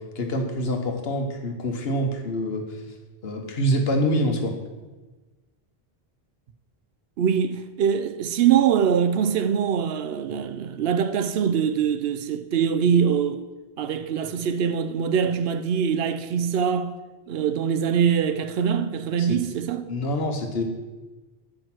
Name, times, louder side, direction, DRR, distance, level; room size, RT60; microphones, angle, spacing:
voice 1, 0.1-2.6 3.2-4.5 19.2-19.4 19.9-20.6, equal, 75° left, 1.3 m, -25 dB
voice 2, 7.2-13.4 13.8-17.0 17.3-19.9, right 7 dB, 75° right, 0.8 m, -23 dB
7.6 x 5.0 x 6.0 m
omnidirectional pair, 1.0 m